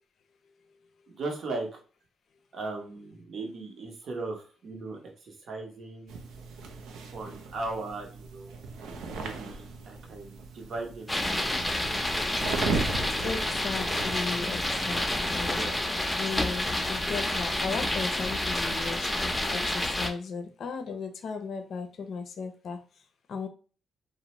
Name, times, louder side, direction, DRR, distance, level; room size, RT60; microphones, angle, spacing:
voice 1, 1.1-1.8 2.5-6.2 7.1-8.6 9.1-12.6 13.8-14.1 15.4-15.9, right 3 dB, 65° right, 2 dB, 0.8 m, -38 dB
sound 1, 6.1-15.6, right 4 dB, 85° right, 0.4 m, -37 dB
sound 2, 11.1-20.1, left 1 dB, 15° left, 0.5 m, -29 dB
voice 2, 13.2-15.6 16.2-22.8 23.3-23.5, left 5 dB, 65° left, 6 dB, 0.5 m, -36 dB
2.6 x 2.0 x 3.0 m, 0.38 s
supercardioid pair, 65°, 0 cm